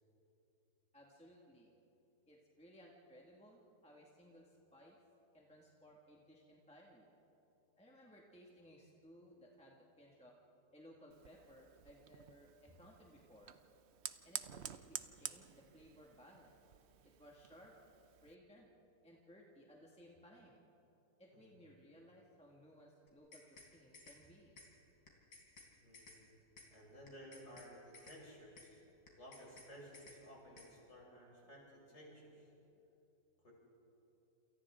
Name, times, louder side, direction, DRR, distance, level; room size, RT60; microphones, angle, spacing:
voice 1, 0.9-1.7 2.3-5.0 5.3-7.1 7.8-10.3 10.7-13.5 14.2-16.6 17.0-17.8 18.2-18.7 19.0-20.6 21.2-24.6 27.9-28.0, equal, 5° left, -2 dB, 2.0 m, -61 dB
Fire, 11.1-18.4, right 9 dB, 55° right, 0.8 m, -51 dB
sound 1, 23.1-23.7 23.9-24.2 24.6-24.7 25.1-25.7 25.9-26.2 26.6-26.7 27.1-27.7 27.9-28.2 28.6-28.7 29.1-29.7 29.9-30.2 30.6-30.7, left 3 dB, 75° left, 4.0 m, -57 dB
voice 2, 25.8-26.3 26.7-28.8 29.2-32.5 33.4-33.5, equal, 40° left, -3 dB, 6.2 m, -56 dB
28.5 x 28.0 x 3.8 m, 3.0 s
omnidirectional pair, 1.8 m